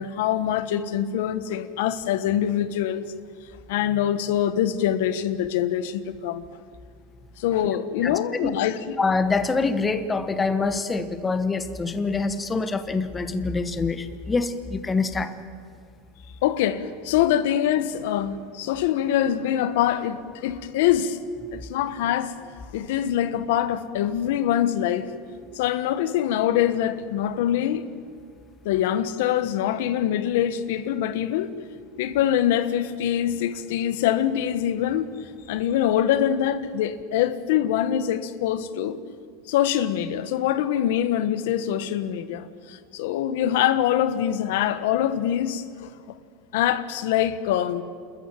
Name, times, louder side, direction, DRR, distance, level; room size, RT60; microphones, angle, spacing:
voice 1, 0.0-3.0 3.7-6.4 7.4-8.9 16.4-21.2 21.5-22.3 22.7-25.1 25.5-27.8 28.6-31.5 32.0-35.0 35.5-39.0 39.5-45.9 46.5-47.8, left 11 dB, 75° left, 1.3 m, -24 dB
voice 2, 8.0-8.5 9.0-15.5, left 4 dB, 15° left, 1.2 m, -25 dB
29.0 x 14.0 x 9.1 m
supercardioid pair, 140°, 0 cm